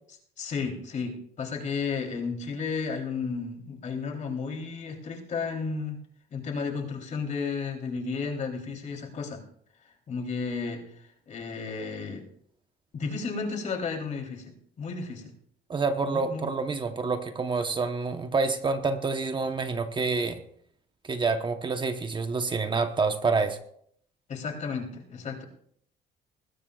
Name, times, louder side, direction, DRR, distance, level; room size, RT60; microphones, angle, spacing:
voice 1, 0.4-6.0 6.3-9.4 9.8-12.3 12.9-15.3 16.1-16.5 24.3-25.4, left 5 dB, 45° left, 2 dB, 3.4 m, -33 dB
voice 2, 15.7-20.4 21.0-23.6, right 4 dB, 30° right, 7 dB, 1.0 m, -27 dB
20.5 x 15.0 x 2.4 m, 0.66 s
cardioid pair, 110°, 17 cm